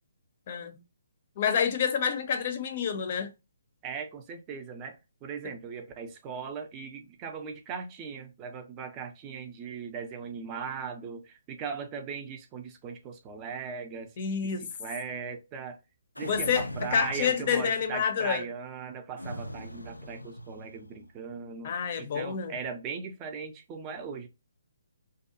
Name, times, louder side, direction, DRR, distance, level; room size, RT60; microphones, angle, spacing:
voice 1, 0.5-0.8 1.4-3.3 14.2-14.7 16.3-18.4 21.6-22.5, left 7 dB, 40° left, 0.5 m, -28 dB
voice 2, 3.8-14.1 14.4-15.8 16.2-24.3, right 6 dB, 20° right, 0.5 m, -39 dB
sound 1, 16.1-18.0 19.2-21.0, equal, 85° left, 0.3 m, -41 dB
2.6 x 2.2 x 2.5 m
figure-of-eight pair, 135°, 0 cm